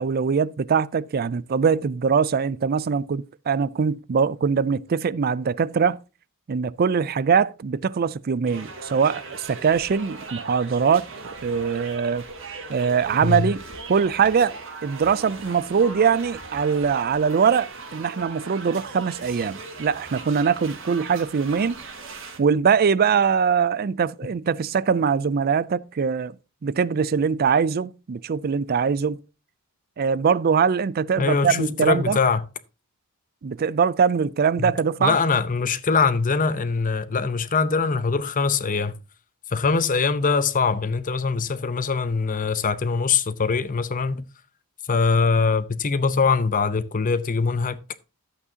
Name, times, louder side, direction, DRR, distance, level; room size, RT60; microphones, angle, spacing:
voice 1, 0.0-6.0 6.5-12.3 12.7-13.6 13.9-14.6 14.8-21.8 22.4-26.3 26.6-29.2 30.0-32.2 33.4-35.2, right 6 dB, 45° right, 0.4 m, -22 dB
sound 1, 8.5-22.4, right 3 dB, 65° right, 1.9 m, -39 dB
voice 2, 13.2-13.5 31.2-32.5 34.6-34.7 35.0-39.0 39.5-44.2 44.9-47.8, left 4 dB, 40° left, 0.7 m, -22 dB
12.0 x 8.2 x 2.8 m
head